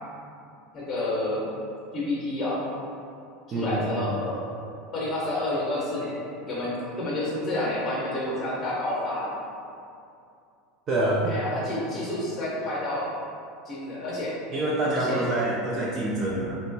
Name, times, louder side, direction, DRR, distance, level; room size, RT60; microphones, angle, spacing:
voice 1, 0.7-1.5 1.9-2.6 3.5-4.4 4.9-6.2 6.5-6.7 7.0-9.4 11.2-13.1 13.7-14.3 14.9-15.2, left 1 dB, 20° left, -6 dB, 0.8 m, -29 dB
voice 2, 3.5-4.1 10.9-11.3 14.5-16.6, right 1 dB, 20° right, -5 dB, 0.3 m, -26 dB
3.0 x 2.2 x 3.9 m, 2.5 s
supercardioid pair, 180°, 0 cm